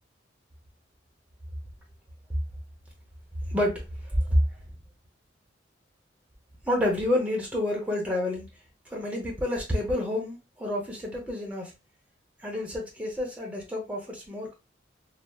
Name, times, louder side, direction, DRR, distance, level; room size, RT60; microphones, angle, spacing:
voice 1, 3.5-4.4 6.6-8.5 8.9-11.7 12.4-14.5, left 1 dB, 5° right, -1 dB, 0.8 m, -29 dB
3.3 x 2.0 x 2.3 m, 0.27 s
head